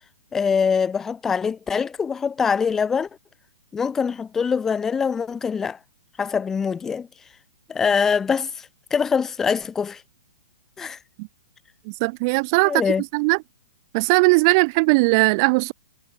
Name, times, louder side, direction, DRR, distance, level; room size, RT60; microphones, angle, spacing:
voice 1, 0.3-3.1 3.7-5.8 6.2-7.1 7.7-8.7 8.9-10.0 10.8-11.0 12.6-13.0, left 6 dB, 15° left, 1.0 m, -23 dB
voice 2, 12.0-12.8 13.1-13.4 13.9-15.7, right 29 dB, 40° right, 0.3 m, -18 dB
hypercardioid pair, 135°, 3 cm